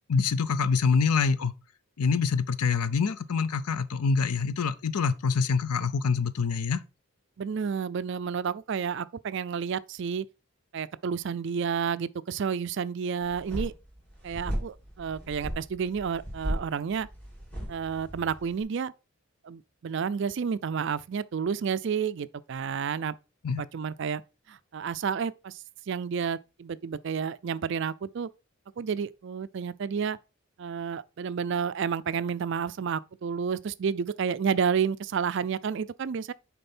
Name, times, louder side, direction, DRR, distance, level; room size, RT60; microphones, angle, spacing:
voice 1, 0.1-1.5 2.0-6.8 23.4-23.6, left 5 dB, 90° left, 0.6 m, -25 dB
voice 2, 7.4-10.3 10.7-13.7 14.2-17.1 17.7-18.9 19.4-23.1 23.6-24.2 24.5-25.6 25.9-28.3 28.8-30.2 30.6-36.3, right 6 dB, 55° right, 0.3 m, -30 dB
sound 1, 13.2-18.6, equal, 5° left, 2.5 m, -36 dB
6.6 x 4.4 x 4.3 m
head